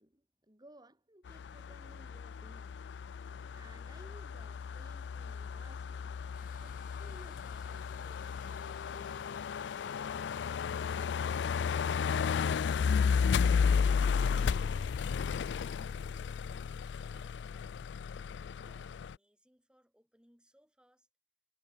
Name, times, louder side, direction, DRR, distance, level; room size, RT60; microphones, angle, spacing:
voice 1, 0.0-2.8 3.5-9.4 10.1-10.2, right 1 dB, 25° right, 6.3 m, -59 dB
sound 1, 1.3-19.1, left 6 dB, 85° left, 0.4 m, -33 dB
sound 2, 6.3-15.6, left 6 dB, 50° left, 1.5 m, -57 dB
voice 2, 15.0-18.0 18.6-21.1, equal, 5° right, 7.4 m, -69 dB
head